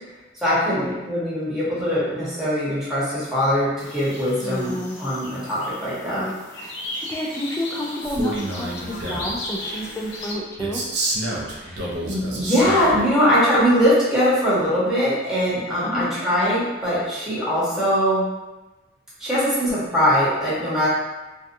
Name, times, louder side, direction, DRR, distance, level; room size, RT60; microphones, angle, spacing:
voice 1, 0.4-4.7 5.0-6.2 11.5-18.2 19.2-20.9, equal, 5° right, -10 dB, 0.9 m, -21 dB
sound 1, 3.8-10.3, left 2 dB, 70° left, 0.5 m, -36 dB
voice 2, 4.4-5.0 6.1-10.8 15.8-16.1, left 1 dB, 15° left, -1 dB, 0.3 m, -30 dB
Male speech man speaking, 8.0-9.4 10.6-13.0, right 1 dB, 65° right, 0.5 m, -28 dB
2.6 x 2.3 x 2.5 m, 1.1 s
head